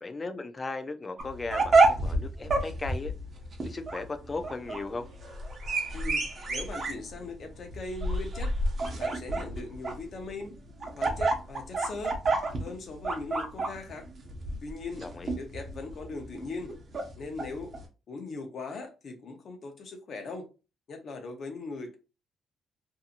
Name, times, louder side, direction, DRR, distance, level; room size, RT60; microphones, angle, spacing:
voice 1, 0.0-3.1 3.6-5.1 15.0-15.3, left 3 dB, 30° left, 0.5 m, -37 dB
sound 1, 1.2-17.8, right 2 dB, 45° right, 0.8 m, -29 dB
voice 2, 5.9-8.5 9.0-10.5 10.9-12.2 12.6-14.1 14.6-16.8 17.1-17.8 18.1-20.5 20.9-22.0, left 3 dB, 55° left, 0.8 m, -40 dB
2.7 x 2.6 x 2.5 m
cardioid pair, 90°, 0 cm